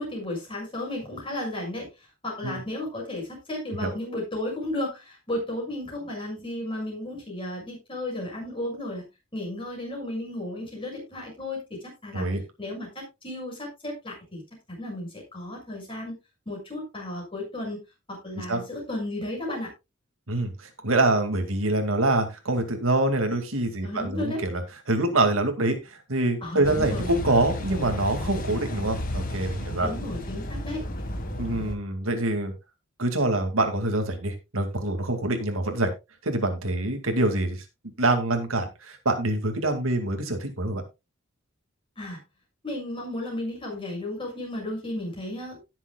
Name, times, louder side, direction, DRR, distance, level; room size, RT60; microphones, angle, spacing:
voice 1, 0.0-1.9 2.2-9.0 9.3-12.3 12.6-14.4 14.7-16.1 16.4-17.8 18.1-19.7 23.8-24.4 26.4-27.1 29.8-30.8 42.0-42.2 42.6-45.6, left 1 dB, 25° left, -1 dB, 6.5 m, -34 dB
voice 2, 20.3-24.6 24.9-29.9 31.4-32.5 33.0-35.9 36.2-37.6 38.0-40.8, right 2 dB, 80° right, 6 dB, 2.3 m, -25 dB
Car passing by / Idling / Accelerating revving vroom, 26.6-31.7, left 1 dB, 40° left, 1.8 m, -33 dB
17.5 x 7.4 x 2.4 m, 0.24 s
head